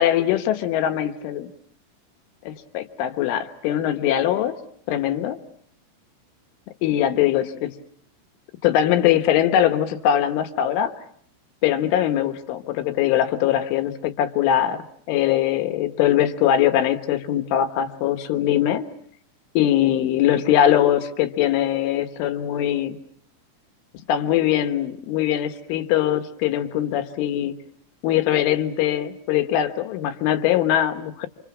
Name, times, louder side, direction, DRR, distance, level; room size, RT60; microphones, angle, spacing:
voice 1, 0.0-1.5 2.4-4.6 4.9-5.4 6.8-7.7 8.6-10.9 11.6-18.8 19.6-23.0 24.1-27.6 28.0-31.3, left 11 dB, 75° left, 8 dB, 3.8 m, -21 dB
28.5 x 26.5 x 7.2 m, 0.64 s
omnidirectional pair, 5.8 m